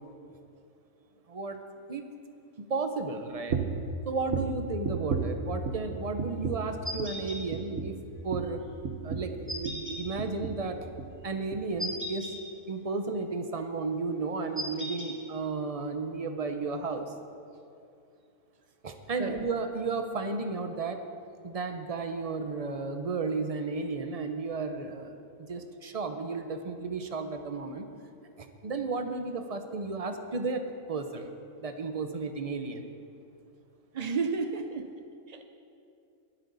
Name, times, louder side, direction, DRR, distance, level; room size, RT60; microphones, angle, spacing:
voice 1, 1.3-1.6 1.9-2.0 2.6-3.6 4.1-8.0 8.2-8.6 9.0-10.8 11.2-12.3 12.7-17.1 18.8-21.0 21.4-25.1 25.4-27.9 28.4-31.3 31.6-32.9, right 3 dB, 35° right, 7 dB, 0.6 m, -33 dB
sound 1, 3.5-3.9 4.3-5.9 6.2-6.7 7.0-7.2 7.5-9.9 10.2-10.7 11.0-11.2 11.5-11.6, right 5 dB, 60° right, 1.2 m, -34 dB
sound 2, 6.8-7.4 9.5-10.0 11.8-12.3 14.5-15.1, equal, 10° right, 2.2 m, -36 dB
voice 2, 33.9-34.9 35.3-35.4, right 4 dB, 80° right, 6 dB, 0.3 m, -31 dB
20.0 x 8.8 x 4.0 m, 2.5 s
omnidirectional pair, 1.6 m